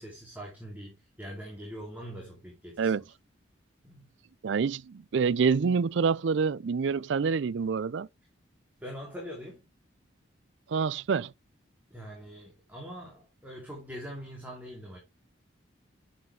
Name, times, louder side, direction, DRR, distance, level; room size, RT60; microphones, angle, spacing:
voice 1, 0.0-2.9 3.8-4.1 8.8-9.7 11.9-15.0, equal, 10° right, 2.7 m, -43 dB
voice 2, 4.4-8.1 10.7-11.3, right 5 dB, 70° right, 0.4 m, -27 dB
11.0 x 7.2 x 3.3 m
head